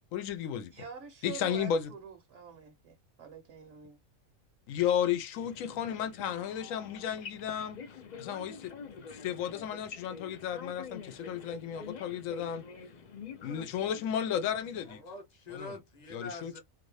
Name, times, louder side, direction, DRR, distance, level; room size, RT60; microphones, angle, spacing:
voice 1, 0.1-0.7 1.2-1.9 4.7-7.8 8.2-8.7 9.2-12.6 13.4-15.0 15.5-15.8 16.1-16.6, left 9 dB, 75° left, 1.0 m, -33 dB
voice 2, 0.7-4.0, right 7 dB, 65° right, 1.0 m, -46 dB
sound 1, 5.3-14.9, left 6 dB, 55° left, 0.5 m, -47 dB
voice 3, 14.9-16.6, left 3 dB, 35° left, 0.9 m, -44 dB
2.8 x 2.6 x 3.1 m
omnidirectional pair, 1.4 m